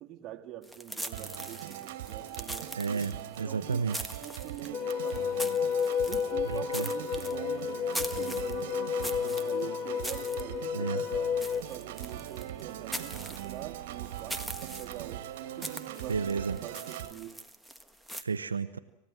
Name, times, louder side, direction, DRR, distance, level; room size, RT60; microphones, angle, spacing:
voice 1, 0.0-3.1 3.4-5.7 6.0-11.4 11.7-17.4, right 12 dB, 40° right, 2.0 m, -45 dB
sound 1, 0.6-18.2, right 1 dB, ahead, 1.5 m, -43 dB
Organ, 1.1-17.1, right 12 dB, 65° right, 1.9 m, -41 dB
voice 2, 2.8-4.0 6.5-6.9 10.7-11.0 16.1-16.6 18.2-18.8, right 5 dB, 85° right, 0.7 m, -32 dB
sound 2, 4.7-11.6, left 7 dB, 40° left, 0.8 m, -31 dB
27.5 x 15.5 x 7.6 m
hypercardioid pair, 95°, 0 cm